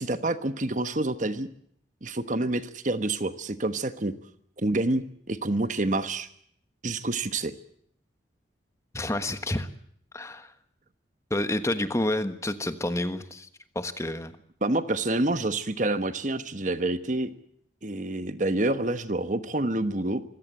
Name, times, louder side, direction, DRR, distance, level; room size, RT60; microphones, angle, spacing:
voice 1, 0.0-1.5 2.0-4.1 4.6-6.3 6.8-7.5 14.6-17.3 17.8-20.2, right 2 dB, 40° right, 11 dB, 1.2 m, -27 dB
voice 2, 8.9-9.7 10.1-10.5 11.3-13.5 13.7-14.3, left 1 dB, 15° left, 10 dB, 1.3 m, -29 dB
25.5 x 16.5 x 8.2 m, 0.67 s
head